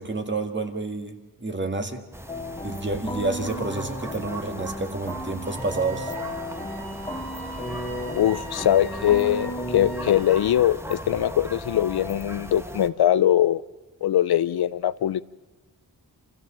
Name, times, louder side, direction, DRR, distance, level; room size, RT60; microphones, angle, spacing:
voice 1, 0.0-2.0 2.6-6.1, right 3 dB, 30° right, 1.9 m, -29 dB
sound 1, 2.1-12.9, right 1 dB, 5° right, 1.2 m, -38 dB
sound 2, 2.3-10.2, left 1 dB, 10° left, 1.8 m, -34 dB
Wind instrument woodwind instrument, 5.4-10.6, right 1 dB, 75° right, 2.7 m, -42 dB
voice 2, 8.1-13.6 14.0-15.2, left 11 dB, 70° left, 0.6 m, -22 dB
26.5 x 14.5 x 7.4 m
cardioid pair, 55°, 39 cm